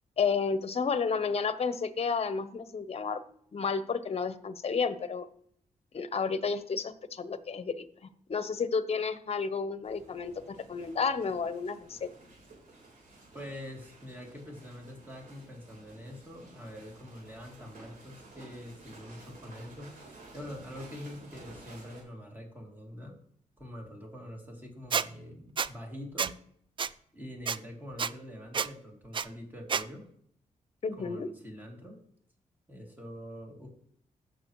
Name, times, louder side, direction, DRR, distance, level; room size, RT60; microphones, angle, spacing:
voice 1, 0.2-3.2 3.5-5.3 5.9-7.8 8.3-12.1 30.8-31.3, left 5 dB, 45° left, 12 dB, 0.8 m, -31 dB
sound 1, 9.8-22.0, right 2 dB, 80° right, 3.7 m, -53 dB
voice 2, 13.3-23.2 23.6-26.3 27.1-30.1 30.9-32.0 32.7-33.7, equal, 15° right, -1 dB, 2.8 m, -45 dB
Squeak, 24.9-25.1 25.6-25.7 26.2-26.3 26.8-26.9 27.5-27.6 28.0-28.1 28.5-28.7 29.1-29.3 29.7-29.8, right 6 dB, 35° right, 0.3 m, -29 dB
15.5 x 6.6 x 3.1 m, 0.64 s
cardioid pair, 100°, 14 cm